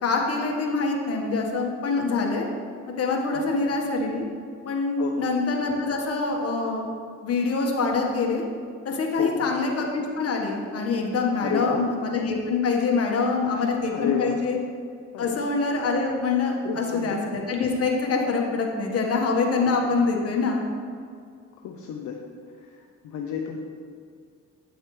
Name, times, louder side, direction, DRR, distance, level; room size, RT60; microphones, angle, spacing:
voice 1, 0.0-2.5 3.0-4.2 4.6-6.9 7.2-8.4 8.8-14.6 15.2-20.6, left 4 dB, 50° left, 0 dB, 1.5 m, -25 dB
voice 2, 3.3-3.6 5.0-5.3 9.2-9.5 11.4-11.8 13.4-14.4 15.1-15.5 16.6-17.2 19.6-19.7 21.6-22.2 22.5-22.8 23.0-23.6, left 7 dB, 70° left, 1 dB, 0.7 m, -31 dB
8.8 x 7.9 x 3.2 m, 2.2 s
cardioid pair, 90°, 30 cm